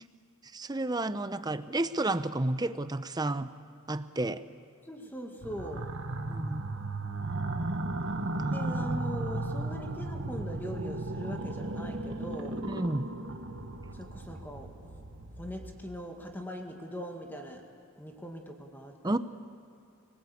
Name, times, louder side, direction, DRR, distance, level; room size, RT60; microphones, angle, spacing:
voice 1, 0.5-3.5 3.9-4.4 6.3-6.6 8.4-8.8 12.7-13.1 19.0-19.2, right 2 dB, 20° right, 12 dB, 0.7 m, -31 dB
voice 2, 4.8-5.9 8.5-12.6 13.9-15.0 15.3-17.7 18.0-19.2, equal, 10° left, 2 dB, 2.0 m, -41 dB
sound 1, 5.4-15.9, right 2 dB, 60° right, 1.5 m, -35 dB
26.5 x 19.0 x 8.5 m, 2.6 s
head